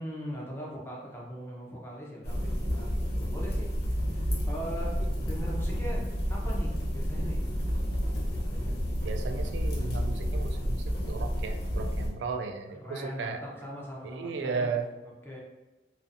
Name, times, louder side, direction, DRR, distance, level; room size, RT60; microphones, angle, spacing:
voice 1, 0.0-7.5 8.3-8.9 12.7-14.7 15.0-15.4, equal, 10° left, -4 dB, 0.5 m, -41 dB
sound 1, 2.2-12.1, equal, 65° left, 0.6 m, -30 dB
voice 2, 9.0-13.4 14.0-14.9, right 4 dB, 80° right, 6 dB, 0.3 m, -35 dB
2.4 x 2.4 x 2.6 m, 1.1 s
head